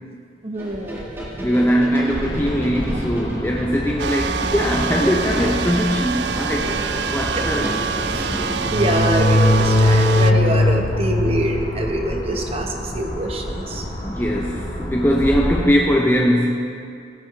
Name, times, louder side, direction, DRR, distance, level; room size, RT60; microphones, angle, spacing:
voice 1, 0.4-1.1 7.3-7.4 8.1-8.3 8.7-13.8, right 1 dB, 35° right, 2 dB, 1.0 m, -25 dB
sound 1, 0.6-10.5, equal, 15° right, 1.6 m, -32 dB
voice 2, 1.4-6.8 7.1-7.8 14.0-16.5, equal, 10° left, -1 dB, 0.6 m, -20 dB
sound 2, 2.1-15.6, left 1 dB, 50° left, 1.9 m, -23 dB
sound 3, 4.0-10.3, right 6 dB, 75° right, 0.4 m, -26 dB
16.0 x 9.1 x 3.2 m, 2.4 s
head